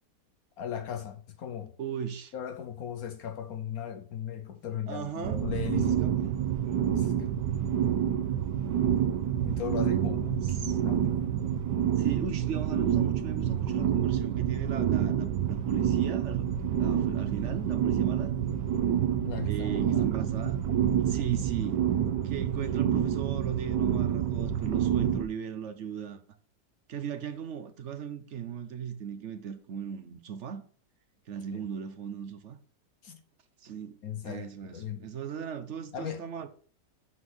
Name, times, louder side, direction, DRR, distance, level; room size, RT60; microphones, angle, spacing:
voice 1, 0.6-1.7 2.3-6.0 6.9-7.3 9.4-11.3 19.2-20.1 31.5-31.7 33.0-33.2 34.0-35.1 35.9-36.2, left 9 dB, 65° left, 1.1 m, -38 dB
voice 2, 1.8-2.3 4.9-5.4 5.7-6.3 10.4-10.8 12.0-16.5 16.8-18.3 19.4-20.6 21.0-21.9 22.2-26.2 26.9-30.6 31.3-32.6 33.6-34.0 34.2-36.5, right 8 dB, 60° right, 0.8 m, -37 dB
sound 1, 5.2-25.2, right 9 dB, 85° right, 1.3 m, -28 dB
7.8 x 3.8 x 6.3 m
omnidirectional pair, 1.8 m